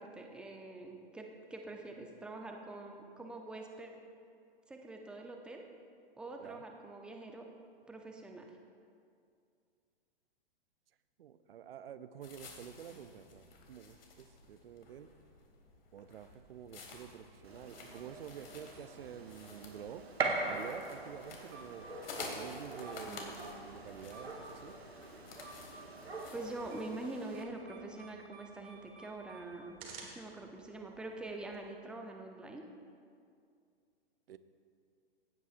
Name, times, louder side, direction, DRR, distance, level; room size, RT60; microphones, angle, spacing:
voice 1, 0.0-3.9 4.7-5.6 6.2-7.4 7.9-8.4 23.1-23.4 26.3-32.6, right 2 dB, 5° right, 2 dB, 0.6 m, -45 dB
voice 2, 11.2-15.1 15.9-20.0 20.5-21.9 22.3-24.7 34.3-34.4, right 9 dB, 65° right, 13 dB, 0.6 m, -49 dB
sound 1, 12.2-26.9, left 3 dB, 65° left, 1.9 m, -52 dB
Gunshot gunfire, 17.4-27.4, right 3 dB, 90° right, 1.3 m, -42 dB
sound 2, 17.8-31.5, right 3 dB, 30° right, 1.6 m, -56 dB
16.0 x 8.2 x 2.5 m, 2.3 s
hypercardioid pair, 120°, 31 cm